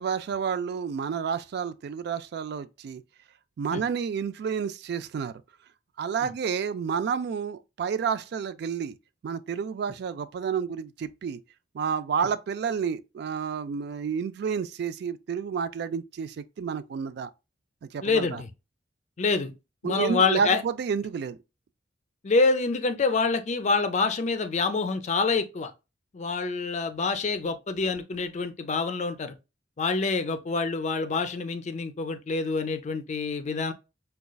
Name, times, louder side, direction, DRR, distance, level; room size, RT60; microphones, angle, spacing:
voice 1, 0.0-3.0 3.6-5.4 6.0-9.0 9.2-11.4 11.7-17.3 17.8-18.4 19.8-21.4, right 6 dB, 65° right, 0.3 m, -30 dB
voice 2, 18.0-18.5 19.2-19.5 19.8-20.6 22.2-25.7 26.1-29.3 29.8-33.7, left 4 dB, 40° left, 0.4 m, -26 dB
5.0 x 2.3 x 2.2 m
head